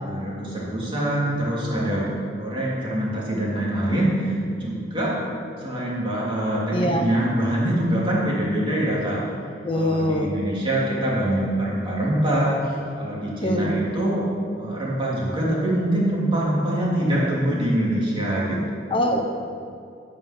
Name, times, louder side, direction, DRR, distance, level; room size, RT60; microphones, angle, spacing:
voice 1, 0.0-5.1 5.6-9.2 9.7-12.6 13.0-14.3 14.6-18.8, right 1 dB, 30° right, -5 dB, 2.9 m, -24 dB
voice 2, 6.7-7.1 9.6-10.3 13.4-13.7 16.9-17.1 18.9-19.2, left 1 dB, 30° left, 2 dB, 0.9 m, -23 dB
16.0 x 5.6 x 5.9 m, 2.3 s
head